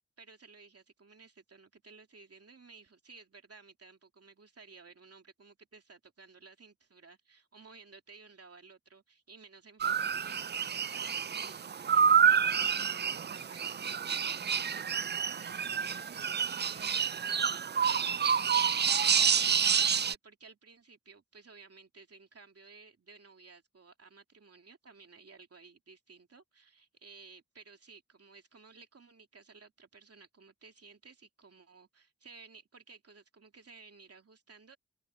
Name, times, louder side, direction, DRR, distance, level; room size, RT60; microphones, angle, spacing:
voice 1, 0.0-10.5 10.9-18.3 19.2-34.8, right 4 dB, 55° right, 2.7 m, -56 dB
sound 1, 9.8-20.2, right 7 dB, 35° right, 0.4 m, -28 dB
wide cardioid pair, 85°, 29 cm